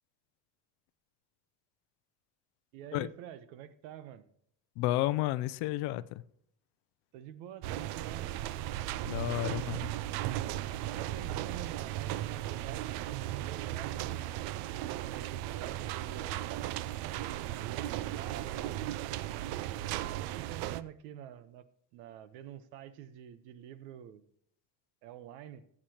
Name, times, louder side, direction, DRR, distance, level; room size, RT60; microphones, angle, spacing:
voice 1, 2.7-4.3 7.1-8.3 9.3-9.9 10.8-14.3 15.1-16.4 17.2-18.9 19.9-21.6 21.9-24.2 25.0-25.7, right 10 dB, 80° right, 1.1 m, -47 dB
voice 2, 4.8-6.2 9.1-9.8, left 15 dB, 55° left, 0.6 m, -31 dB
sound 1, 7.6-20.8, right 13 dB, 55° right, 0.5 m, -36 dB
17.5 x 8.7 x 3.0 m
cardioid pair, 170°, 48 cm